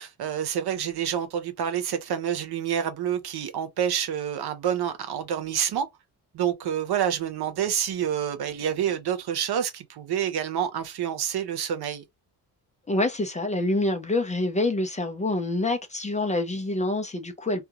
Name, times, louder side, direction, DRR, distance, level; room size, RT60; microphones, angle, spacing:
voice 1, 0.0-5.9 6.3-12.0, right 9 dB, 75° right, 0.8 m, -28 dB
voice 2, 12.9-17.7, left 2 dB, 20° left, 0.5 m, -26 dB
3.6 x 2.3 x 2.9 m
wide cardioid pair, 155°, 38 cm